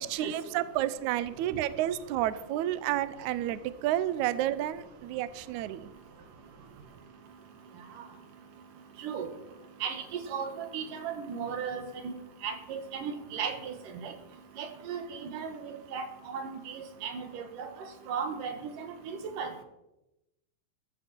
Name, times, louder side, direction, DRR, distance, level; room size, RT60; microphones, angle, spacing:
voice 1, 0.0-5.9, right 13 dB, 85° right, 15 dB, 1.7 m, -30 dB
voice 2, 10.3-12.1 12.4-13.8 14.0-14.1 14.6-17.7 18.1-19.5, right 6 dB, 65° right, 7 dB, 3.1 m, -36 dB
14.0 x 13.5 x 4.5 m, 0.93 s
omnidirectional pair, 4.2 m